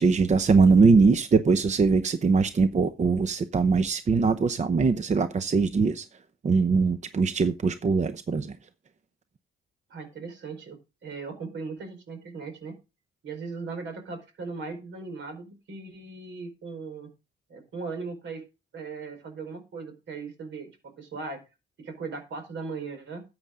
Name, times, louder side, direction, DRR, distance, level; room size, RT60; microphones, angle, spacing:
voice 1, 0.0-6.1 6.4-8.6, right 4 dB, 35° right, 0.8 m, -22 dB
voice 2, 9.9-12.8 13.2-17.1 17.5-18.4 18.7-21.4 21.8-23.2, right 4 dB, 70° right, 4.7 m, -38 dB
13.5 x 8.8 x 3.7 m
cardioid pair, 90°, 20 cm